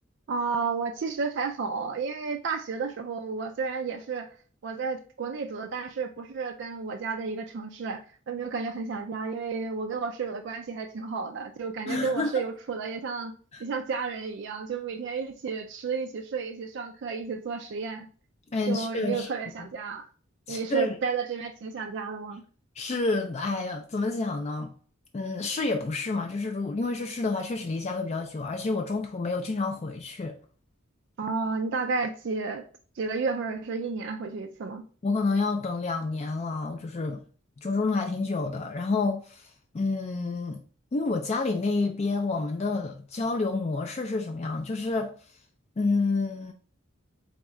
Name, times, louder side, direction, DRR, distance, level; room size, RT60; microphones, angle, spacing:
voice 1, 0.3-4.3 4.6-13.3 13.6-18.1 18.7-20.1 20.5-22.4 31.2-32.7 33.0-34.8, right 4 dB, 55° right, 0.3 m, -32 dB
voice 2, 11.9-12.3 13.5-13.6 18.5-19.3 19.6-19.7 20.5-21.0 22.8-24.7 25.1-30.4 35.0-37.2 37.6-40.6 40.9-45.1 45.8-46.5, left 3 dB, 30° left, 0.3 m, -29 dB
3.6 x 3.5 x 3.1 m
head